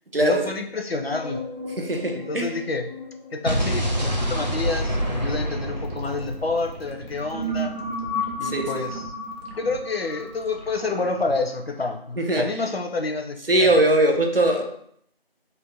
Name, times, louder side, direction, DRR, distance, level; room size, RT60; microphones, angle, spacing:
voice 1, 0.2-1.4 2.1-2.9 3.3-7.7 8.4-9.1 9.5-13.7, left 3 dB, 80° left, 4 dB, 0.7 m, -28 dB
sound 1, 1.0-6.3 6.9-11.9, left 1 dB, 45° right, 1.3 m, -35 dB
voice 2, 1.8-2.5 8.4-8.8 12.2-12.4 13.5-14.6, right 1 dB, 65° right, 3 dB, 0.8 m, -21 dB
Explosion, 3.5-7.5, equal, 45° left, 0.5 m, -27 dB
sound 2, 5.8-11.4, right 1 dB, 85° right, 1.2 m, -42 dB
3.4 x 2.6 x 4.1 m, 0.67 s
figure-of-eight pair, 175°, 30 cm